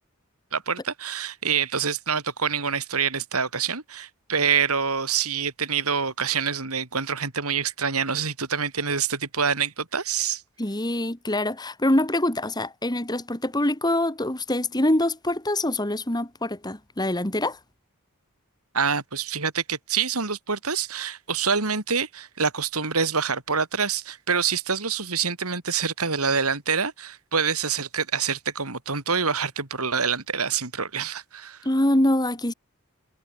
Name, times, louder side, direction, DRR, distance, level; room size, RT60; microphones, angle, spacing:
voice 1, 0.5-10.4 18.7-31.6, right 6 dB, 85° right, 3.8 m, -26 dB
voice 2, 10.6-17.6 31.6-32.5, left 1 dB, 20° left, 2.3 m, -24 dB
head